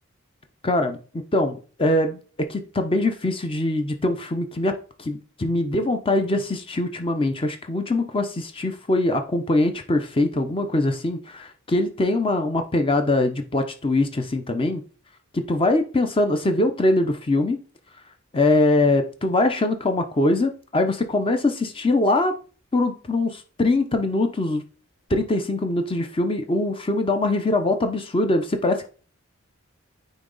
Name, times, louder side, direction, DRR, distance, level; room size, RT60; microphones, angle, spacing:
voice 1, 0.6-4.7 5.0-14.8 15.3-17.6 18.3-22.3 22.7-24.6 25.1-28.9, left 2 dB, 25° left, 7 dB, 0.6 m, -22 dB
9.1 x 3.0 x 3.9 m, 0.38 s
head